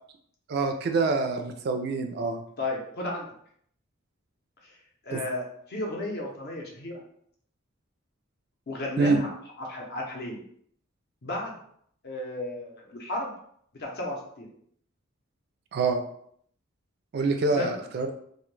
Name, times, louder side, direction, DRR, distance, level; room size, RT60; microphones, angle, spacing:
voice 1, 0.5-2.4 5.1-5.2 9.0-9.2 15.7-16.0 17.1-18.1, right 3 dB, 50° right, 6 dB, 0.3 m, -26 dB
voice 2, 2.6-3.3 4.6-4.8 5.0-6.9 8.7-10.4 11.2-11.6 12.0-13.3 13.8-14.5 17.5-17.9, left 1 dB, 50° left, -1 dB, 0.6 m, -34 dB
2.1 x 2.1 x 3.1 m, 0.65 s
head